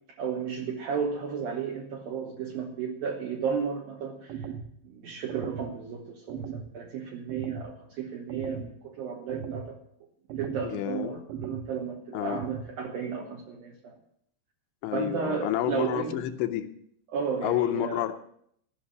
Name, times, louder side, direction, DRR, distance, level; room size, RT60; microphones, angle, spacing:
voice 1, 0.2-4.5 4.8-9.8 10.4-14.0 14.9-16.2 17.1-18.1, right 6 dB, 65° right, 0 dB, 2.5 m, -33 dB
sound 1, 4.3-4.7 5.3-5.7 6.3-6.7 7.3-7.7 8.3-8.7 9.3-9.7 10.3-10.7 11.3-11.7 12.3-12.7, right 7 dB, 90° right, 3.3 m, -37 dB
voice 2, 10.6-11.2 12.1-12.4 14.8-16.7 17.4-18.1, left 12 dB, 80° left, 8 dB, 2.9 m, -29 dB
15.0 x 6.2 x 9.5 m, 0.69 s
omnidirectional pair, 5.3 m